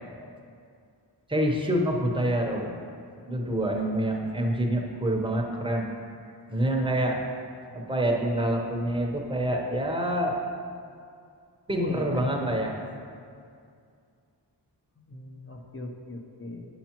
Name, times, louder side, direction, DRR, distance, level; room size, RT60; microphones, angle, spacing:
voice 1, 1.3-2.7 3.3-5.9 6.5-7.2 7.7-10.4 11.7-12.8, right 1 dB, 10° right, 0 dB, 0.9 m, -26 dB
voice 2, 11.8-12.4 15.0-16.7, left 2 dB, 30° left, 2 dB, 0.8 m, -39 dB
9.2 x 5.8 x 3.0 m, 2.3 s
wide cardioid pair, 70°, 43 cm